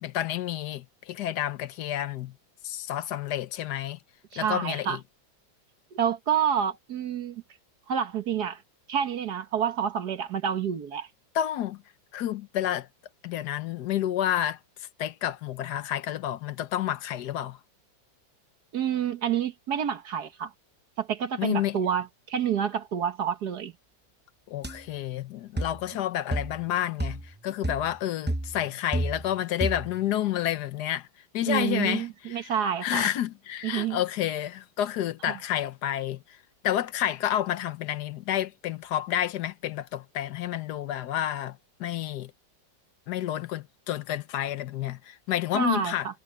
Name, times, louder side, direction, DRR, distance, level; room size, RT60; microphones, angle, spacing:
voice 1, 0.0-2.3 2.6-4.0 4.4-5.0 11.3-11.8 12.1-12.9 13.2-17.6 21.4-21.8 24.5-31.1 31.3-32.5 32.8-36.4 36.6-42.3 43.1-46.1, left 11 dB, 70° left, 1.2 m, -30 dB
voice 2, 4.3-5.0 5.9-7.4 7.9-8.6 8.9-11.1 18.7-20.5 21.0-23.7 31.5-33.1 33.6-34.0 45.5-45.9, right 8 dB, 60° right, 1.6 m, -28 dB
sound 1, 24.6-24.8 25.6-25.8 26.3-26.7 27.0-27.3 27.6-27.9 28.3-29.4 29.6-30.0, right 1 dB, 15° right, 0.3 m, -31 dB
omnidirectional pair, 2.0 m